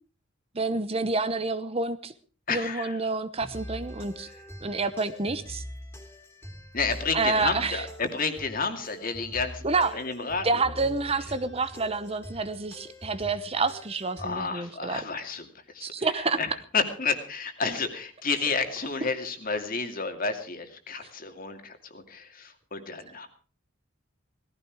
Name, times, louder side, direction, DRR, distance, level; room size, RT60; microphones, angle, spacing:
voice 1, 0.5-2.1 2.5-4.3 4.6-5.6 7.1-7.9 9.6-10.1 10.4-15.0 15.8-16.4 19.0-19.1, right 3 dB, 30° right, 12 dB, 0.9 m, -28 dB
voice 2, 2.5-3.0 6.7-10.6 14.2-15.5 15.7-15.9 16.4-23.3, left 4 dB, 45° left, 6 dB, 2.5 m, -31 dB
sound 1, 3.4-14.5, equal, 10° left, 3.1 m, -43 dB
18.5 x 14.5 x 4.8 m, 0.39 s
head